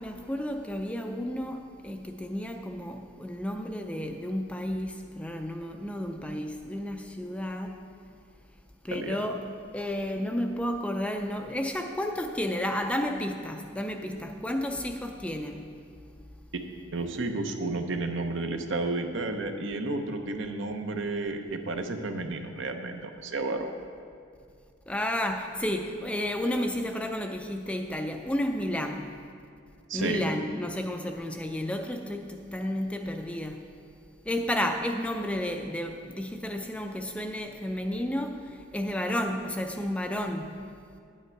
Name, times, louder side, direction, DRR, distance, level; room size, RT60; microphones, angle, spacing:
voice 1, 0.0-7.8 8.8-15.7 24.9-29.1 29.9-33.6 34.3-40.6, left 1 dB, 5° left, 0.4 m, -32 dB
voice 2, 16.9-23.7 29.9-30.2, right 2 dB, 65° right, 0.8 m, -32 dB
11.0 x 9.3 x 4.6 m
head